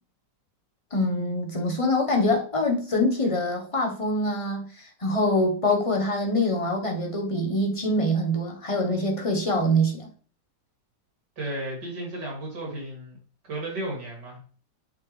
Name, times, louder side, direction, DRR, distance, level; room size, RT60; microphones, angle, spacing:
voice 1, 0.9-10.1, left 1 dB, 25° left, 0.9 m, -24 dB
voice 2, 11.4-13.2 13.4-14.4, right 1 dB, 65° right, 3.3 m, -34 dB
8.0 x 5.6 x 3.3 m
omnidirectional pair, 2.0 m